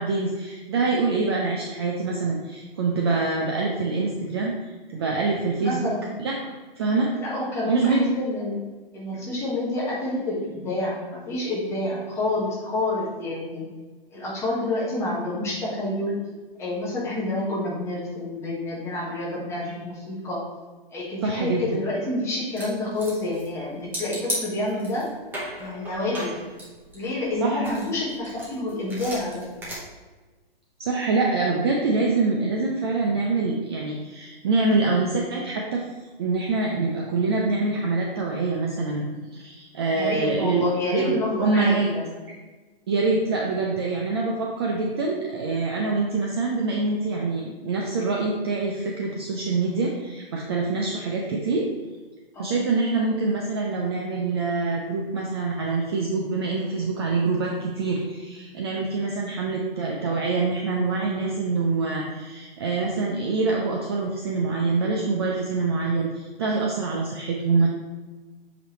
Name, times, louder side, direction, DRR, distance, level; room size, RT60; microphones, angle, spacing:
voice 1, 0.0-4.5 4.9-5.9 6.2-6.3 6.8-7.1 7.7-8.0 21.2-21.8 27.4-27.7 30.8-35.8 36.2-39.0 39.3-40.6 40.9-41.9 42.9-51.7 52.4-67.7, right 3 dB, 25° right, -1 dB, 0.5 m, -25 dB
voice 2, 5.6-6.1 7.1-8.6 8.9-13.6 14.1-16.2 16.6-20.4 20.9-25.0 25.6-26.4 26.9-29.4 39.9-42.0 52.3-52.6, left 2 dB, 10° left, -6 dB, 1.2 m, -28 dB
sound 1, 22.6-23.6 23.9-25.1 25.3-27.3 27.6-29.7, right 1 dB, 5° right, 0.8 m, -35 dB
6.5 x 5.0 x 3.0 m, 1.3 s
hypercardioid pair, 155°, 29 cm